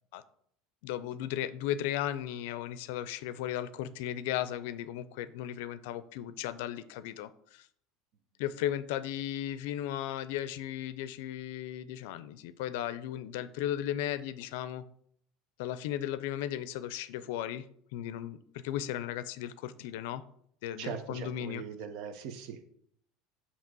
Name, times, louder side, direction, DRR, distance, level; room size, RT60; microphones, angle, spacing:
voice 1, 0.8-7.7 8.4-14.8 15.6-17.7 17.9-18.4 18.6-20.2 20.6-21.6, left 11 dB, 80° left, 14 dB, 0.5 m, -36 dB
voice 2, 20.8-22.6, right 7 dB, 60° right, 8 dB, 0.8 m, -40 dB
7.4 x 2.9 x 6.0 m, 0.66 s
cardioid pair, 150°, 0 cm